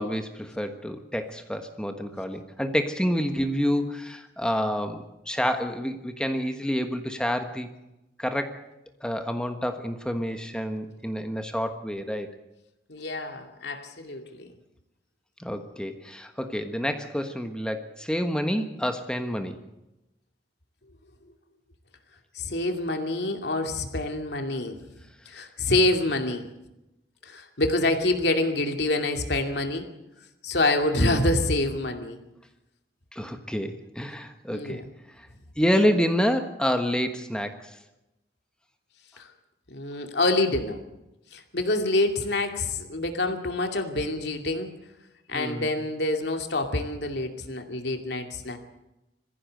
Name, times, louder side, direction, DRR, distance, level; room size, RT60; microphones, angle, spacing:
voice 1, 0.0-7.7 8.2-8.6 9.0-12.3 15.4-19.6 31.0-31.2 33.1-34.8 35.2-35.3 35.6-37.8 45.3-45.7, equal, 5° left, 6 dB, 1.3 m, -28 dB
voice 2, 12.9-14.5 22.3-24.8 25.3-26.5 27.2-29.9 30.4-32.2 34.5-34.8 39.2-39.3 39.7-40.8 41.3-44.7 45.3-48.6, left 2 dB, 80° left, 4 dB, 2.5 m, -26 dB
21.5 x 15.5 x 7.9 m, 0.93 s
head